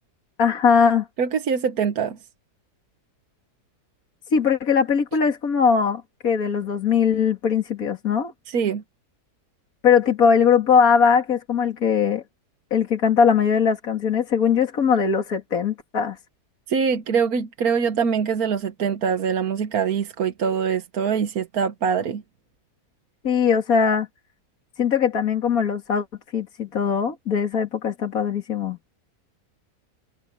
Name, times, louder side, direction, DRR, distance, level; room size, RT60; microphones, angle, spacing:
voice 1, 0.4-1.1 4.3-8.3 9.8-12.2 12.7-16.2 23.2-24.1 24.8-26.1 26.3-28.8, left 6 dB, 60° left, 2.7 m, -20 dB
voice 2, 1.2-2.2 8.5-8.8 16.7-22.2, right 6 dB, 65° right, 1.6 m, -23 dB
omnidirectional pair, 1.7 m